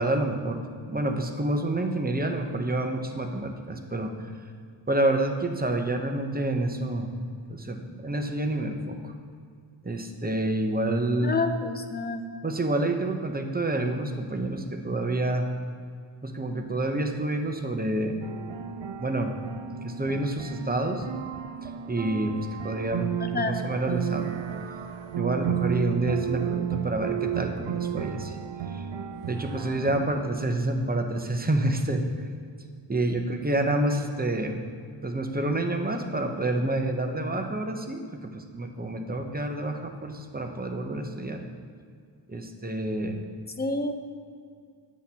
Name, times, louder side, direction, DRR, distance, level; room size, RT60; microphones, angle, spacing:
voice 1, 0.0-4.1 4.9-7.1 7.5-9.0 9.8-11.4 12.4-15.5 16.2-18.3 19.0-19.4 19.8-21.0 21.9-23.1 23.3-24.3 25.2-28.3 28.7-28.8 29.3-32.0 32.9-34.6 35.0-41.4 42.3-43.2, right 1 dB, 20° right, 4 dB, 0.8 m, -28 dB
voice 2, 11.2-12.2 23.3-23.6 43.6-43.9, left 3 dB, 20° left, 6 dB, 0.6 m, -28 dB
sound 1, 18.2-30.0, right 10 dB, 65° right, 0.6 m, -33 dB
10.5 x 7.9 x 2.8 m, 2.1 s
cardioid pair, 75°, 49 cm